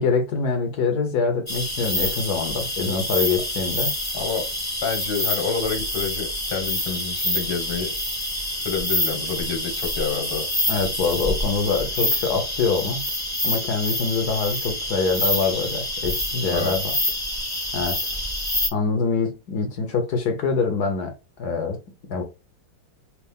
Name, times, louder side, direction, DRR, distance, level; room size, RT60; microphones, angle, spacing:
voice 1, 0.0-3.9 10.7-13.0 13.4-16.9 17.7-18.1 18.7-21.1 21.4-21.8 22.1-22.2, left 4 dB, 60° left, 1.3 m, -24 dB
sound 1, 1.5-18.7, left 1 dB, 15° left, 0.5 m, -27 dB
voice 2, 4.1-4.4 4.8-7.9 8.6-10.5 16.5-16.8, left 6 dB, 80° left, 2.2 m, -28 dB
4.5 x 2.4 x 3.5 m
omnidirectional pair, 2.1 m